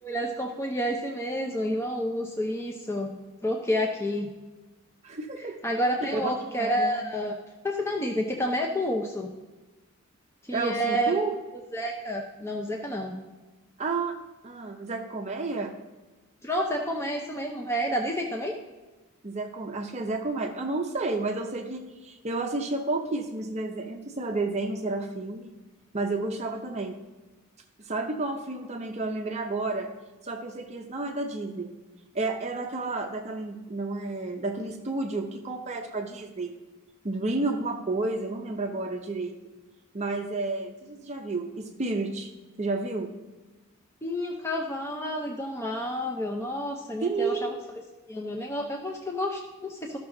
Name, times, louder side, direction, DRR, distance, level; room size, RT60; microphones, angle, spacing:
voice 1, 0.0-3.1 3.4-4.3 5.4-7.4 7.6-9.3 10.4-11.2 11.7-13.1 16.4-18.5 44.0-47.5 48.1-50.0, equal, 10° left, 0 dB, 0.6 m, -29 dB
voice 2, 5.0-5.6 6.1-6.3 6.6-7.0 10.5-11.4 13.8-14.2 14.4-15.8 19.2-25.5 25.9-26.9 27.8-29.9 30.2-31.7 32.1-36.5 37.0-39.3 39.9-42.3 42.6-43.1 47.0-47.6, right 3 dB, 30° right, 3 dB, 0.6 m, -31 dB
13.0 x 6.0 x 3.8 m, 1.2 s
head